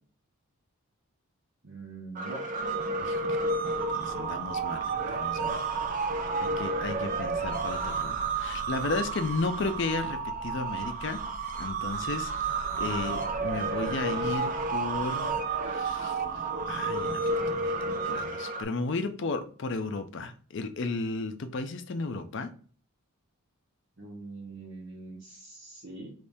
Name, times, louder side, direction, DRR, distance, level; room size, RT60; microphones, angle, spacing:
voice 1, 1.6-2.4 24.0-26.1, right 3 dB, 50° right, 0.9 m, -43 dB
sound 1, 2.1-18.6, right 3 dB, 35° right, 0.4 m, -31 dB
voice 2, 3.0-3.4 3.9-5.6 6.4-11.2 11.6-15.3 15.7-16.2 16.7-22.5, left 3 dB, 55° left, 0.4 m, -34 dB
3.5 x 3.1 x 2.6 m
head